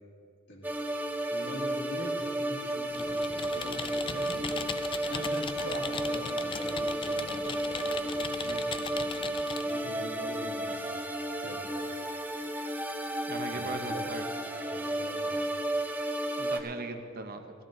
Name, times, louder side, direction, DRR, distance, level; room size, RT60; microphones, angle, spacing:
sound 1, 0.6-16.6, right 1 dB, 10° right, 0.7 m, -33 dB
voice 1, 1.3-4.5 5.1-7.4 9.7-11.0 11.4-11.7 13.5-14.0 14.7-15.4, equal, 60° left, -1 dB, 2.1 m, -43 dB
Computer keyboard, 2.9-9.7, left 5 dB, 25° left, 0.4 m, -39 dB
voice 2, 13.3-14.3 16.4-17.5, right 3 dB, 50° right, 6 dB, 0.8 m, -39 dB
16.0 x 13.0 x 3.8 m, 2.5 s
head